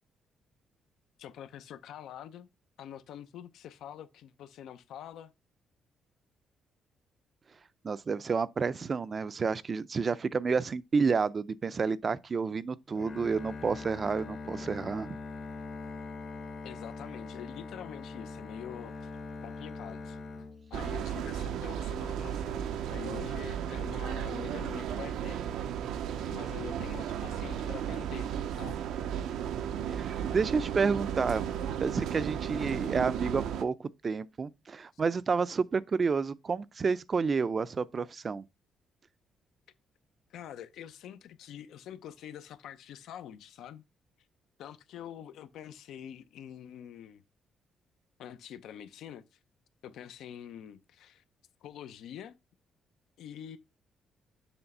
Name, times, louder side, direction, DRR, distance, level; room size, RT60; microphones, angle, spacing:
voice 1, 1.2-2.5 2.8-5.3 16.6-19.1 19.4-20.2 20.7-25.4 26.3-28.3 28.6-28.8 40.3-43.8 44.6-47.2 48.2-49.4 49.8-51.2 51.6-52.3 53.2-53.6, left 10 dB, 80° left, 0.7 m, -45 dB
voice 2, 7.8-15.2 29.9-31.5 31.8-38.5, right 5 dB, 40° right, 0.4 m, -30 dB
Bowed string instrument, 12.9-21.2, left 3 dB, 45° left, 1.0 m, -42 dB
sound 1, 20.7-33.6, right 9 dB, 85° right, 0.6 m, -34 dB
7.1 x 3.2 x 5.4 m
cardioid pair, 90°, 0 cm